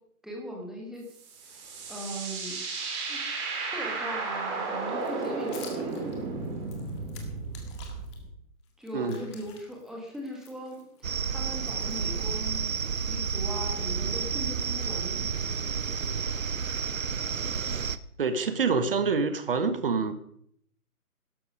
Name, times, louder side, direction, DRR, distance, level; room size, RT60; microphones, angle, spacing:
voice 1, 0.2-1.1 1.4-1.6 1.9-3.2 3.6-6.0 8.8-12.7 12.9-15.3, equal, ahead, 1.4 m, -39 dB
sound 1, 1.1-8.3, right 4 dB, 20° right, 2.5 m, -34 dB
sound 2, 5.0-8.2 8.6-11.7, left 6 dB, 20° left, 1.8 m, -51 dB
sound 3, 11.0-18.0, right 6 dB, 60° right, 0.9 m, -30 dB
voice 2, 18.2-20.1, right 4 dB, 40° right, 1.3 m, -26 dB
12.5 x 11.5 x 5.0 m
figure-of-eight pair, 140°, 44 cm